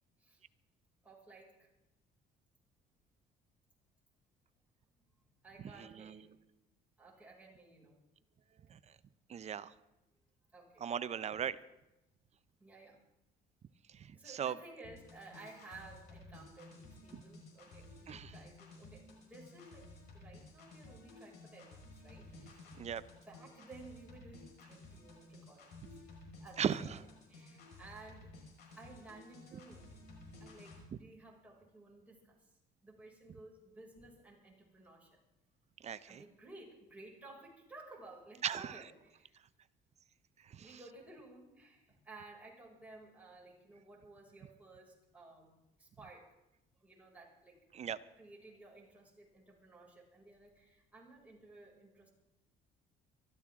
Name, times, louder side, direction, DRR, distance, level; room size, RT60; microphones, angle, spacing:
voice 1, 1.0-1.7 5.4-6.3 7.0-8.0 10.5-11.0 12.6-13.0 14.1-19.9 20.1-22.6 23.3-25.8 26.4-27.0 27.3-28.4 28.8-30.0 30.4-32.5 32.8-35.2 36.1-39.4 40.6-46.3 46.8-47.6 48.2-52.1, right 2 dB, 10° right, -4 dB, 6.1 m, -56 dB
voice 2, 5.6-6.2 8.7-8.8 9.3-9.7 10.8-11.6 13.9-14.6 17.1-17.2 18.1-18.3 22.8-23.0 26.6-27.0 35.8-36.2 38.4-38.8 40.4-40.8 47.7-48.0, right 8 dB, 40° right, 15 dB, 0.7 m, -38 dB
sound 1, 14.8-30.8, left 2 dB, 75° left, 5.5 m, -55 dB
24.0 x 14.0 x 3.7 m, 0.92 s
cardioid pair, 110°, 17 cm